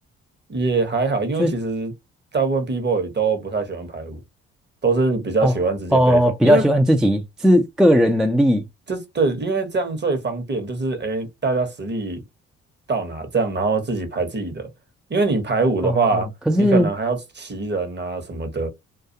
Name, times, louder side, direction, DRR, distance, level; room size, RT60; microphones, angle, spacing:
voice 1, 0.5-1.9 2.3-4.2 4.8-6.6 8.9-12.2 12.9-14.7 15.1-16.3 16.6-18.7, right 3 dB, 35° right, 1.0 m, -23 dB
voice 2, 5.9-8.6 15.8-16.9, equal, ahead, 0.4 m, -17 dB
2.3 x 2.3 x 2.7 m
hypercardioid pair, 50°, 32 cm